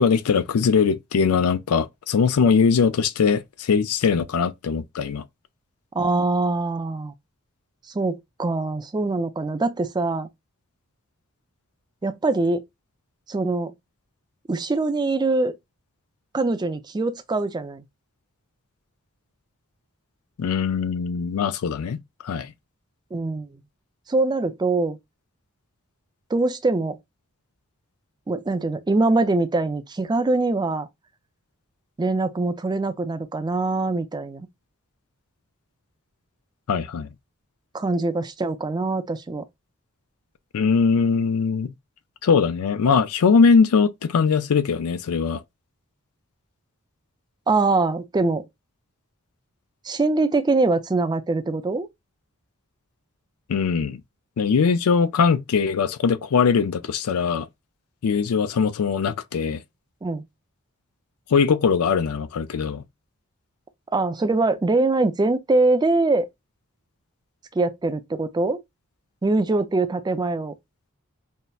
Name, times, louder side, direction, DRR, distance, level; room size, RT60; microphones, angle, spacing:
voice 1, 0.0-5.2 20.4-22.0 22.2-22.5 36.7-37.1 40.5-41.7 42.2-45.4 53.5-54.0 54.4-57.5 58.0-59.6 61.3-62.8, left 5 dB, 80° left, 0.4 m, -21 dB
voice 2, 5.9-7.1 7.9-10.3 12.0-12.6 13.3-13.7 14.5-15.5 16.3-17.8 23.1-23.6 24.1-25.0 26.3-27.0 28.3-30.9 32.0-34.5 37.7-39.5 47.5-48.5 49.8-51.9 60.0-60.2 63.9-66.3 67.5-68.6 69.2-70.5, right 3 dB, 20° right, 0.4 m, -23 dB
5.4 x 2.0 x 2.3 m
head